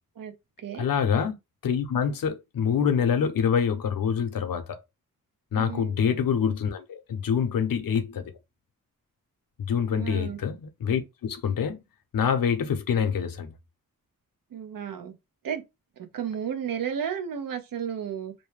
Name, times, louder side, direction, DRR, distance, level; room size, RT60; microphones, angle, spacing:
voice 1, 0.8-1.3 1.6-4.8 5.5-8.3 9.6-11.8 12.1-13.5, left 7 dB, 75° left, 0.7 m, -26 dB
voice 2, 5.5-5.9 10.0-10.4 14.5-15.1 15.4-15.6 16.0-18.3, right 8 dB, 75° right, 0.7 m, -33 dB
2.6 x 2.1 x 3.1 m
wide cardioid pair, 125°, 34 cm